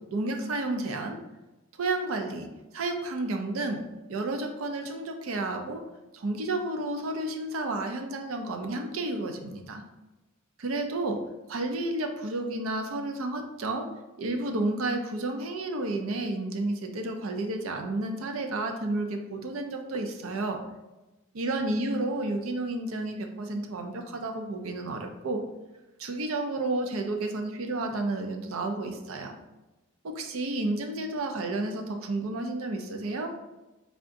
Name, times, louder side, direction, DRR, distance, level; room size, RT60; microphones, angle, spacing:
voice 1, 0.1-1.2 1.8-2.5 2.7-5.8 6.1-9.8 10.6-11.2 11.5-13.9 14.2-20.6 21.3-25.4 26.0-29.4 30.0-33.3, right 2 dB, 80° right, 4 dB, 0.5 m, -31 dB
3.7 x 3.5 x 2.5 m, 1.1 s
head